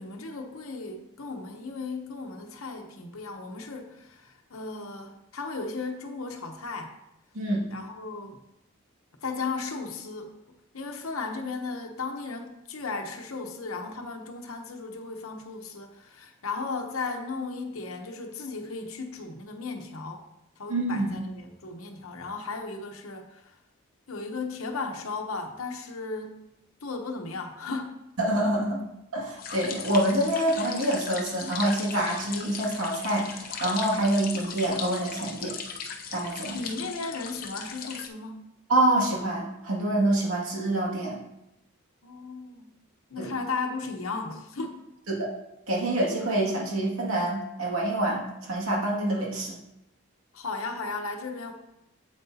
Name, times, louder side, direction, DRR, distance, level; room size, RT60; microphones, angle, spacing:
voice 1, 0.0-7.0 7.7-8.4 9.2-10.3 10.7-20.2 20.6-23.5 24.1-26.4 26.8-28.0 36.5-38.5 42.0-42.7 43.1-44.8 50.3-51.5, left 4 dB, 80° left, 3 dB, 0.9 m, -35 dB
voice 2, 7.3-7.7 20.7-21.2 28.2-28.8 29.1-35.5 36.1-36.6 38.7-41.2 43.2-43.3 45.1-45.3 45.7-49.6, right 1 dB, 85° right, -3 dB, 2.2 m, -26 dB
sound 1, 29.4-38.1, left 6 dB, 40° left, 0.6 m, -38 dB
7.8 x 7.6 x 2.8 m, 0.86 s
head